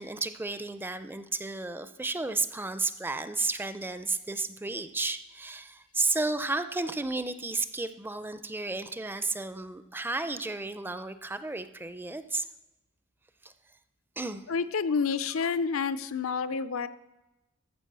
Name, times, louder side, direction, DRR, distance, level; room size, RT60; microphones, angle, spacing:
voice 1, 0.0-12.5 13.4-13.5 14.2-14.5, right 3 dB, 10° right, 11 dB, 0.5 m, -32 dB
voice 2, 14.5-16.9, left 5 dB, 75° left, 13 dB, 0.6 m, -29 dB
14.0 x 5.2 x 6.8 m, 1.0 s
head